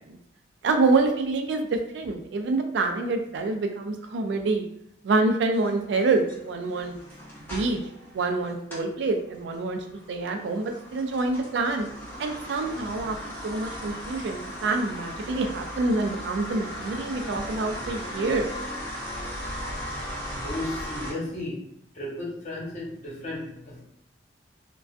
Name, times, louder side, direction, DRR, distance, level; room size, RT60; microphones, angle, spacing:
voice 1, 0.6-4.6 5.0-7.0 7.5-7.8 8.1-11.9 12.2-13.2 13.4-18.5, right 3 dB, 70° right, 5 dB, 0.3 m, -26 dB
sound 1, 5.5-8.9 9.3-21.1, equal, 10° left, 0.7 m, -37 dB
voice 2, 20.3-21.6 21.9-23.8, left 1 dB, 40° left, -6 dB, 1.0 m, -34 dB
2.4 x 2.3 x 2.3 m, 0.72 s
head